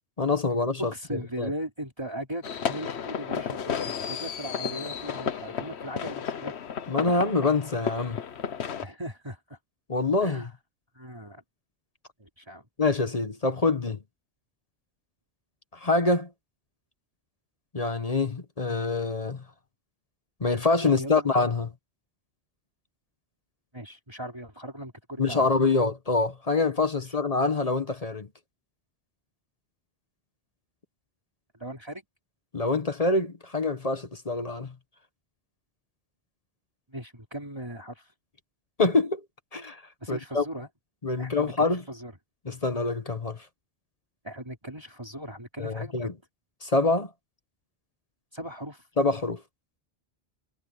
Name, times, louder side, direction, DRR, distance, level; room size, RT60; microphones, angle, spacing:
voice 1, 0.2-0.9 1.4-1.5 6.9-8.2 9.9-10.5 12.8-14.0 15.8-16.3 17.7-19.4 20.4-21.7 25.2-28.3 32.5-34.7 38.8-39.2 39.5-39.8 40.1-40.4 41.0-41.8 42.4-43.4 45.6-46.1 46.6-47.1 49.0-49.4, left 3 dB, 35° left, 1.2 m, -25 dB
voice 2, 0.8-2.4 2.7-6.5 8.8-9.6 10.2-10.5 10.9-11.4 12.2-12.7 20.8-21.3 23.7-25.5 27.0-27.2 31.6-32.0 36.9-38.1 40.0-40.7 41.2-42.1 44.2-46.1 48.3-48.9, right 1 dB, 25° right, 3.8 m, -38 dB
sound 1, 2.4-8.9, left 7 dB, 80° left, 1.2 m, -33 dB
omnidirectional pair, 1.1 m